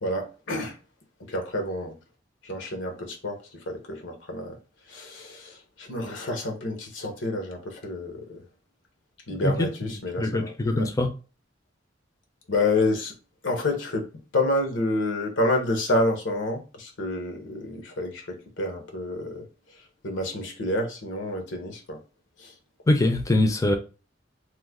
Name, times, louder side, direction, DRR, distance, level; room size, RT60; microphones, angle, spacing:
voice 1, 0.0-0.8 1.3-2.0 2.4-4.6 4.9-8.4 9.3-10.9 12.5-13.1 13.4-19.4 20.0-22.0 22.4-22.5, left 2 dB, 85° left, 0.9 m, -29 dB
voice 2, 9.3-9.7 10.2-11.1 22.9-23.8, left 2 dB, 20° left, 0.4 m, -23 dB
3.1 x 2.1 x 3.5 m
head